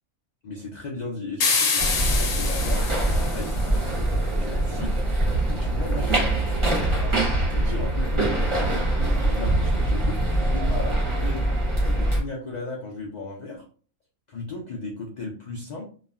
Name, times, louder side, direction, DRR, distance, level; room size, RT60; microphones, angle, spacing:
voice 1, 0.4-2.8 3.1-3.5 4.2-5.0 5.5-6.9 7.4-8.8 9.2-11.5 11.8-13.6 14.3-15.9, left 3 dB, 85° left, -1 dB, 0.4 m, -36 dB
sound 1, 1.4-3.8, left 4 dB, 60° left, 0.8 m, -26 dB
sound 2, 1.8-12.2, right 1 dB, 30° right, 0.6 m, -23 dB
3.0 x 2.1 x 2.3 m, 0.41 s
omnidirectional pair, 1.5 m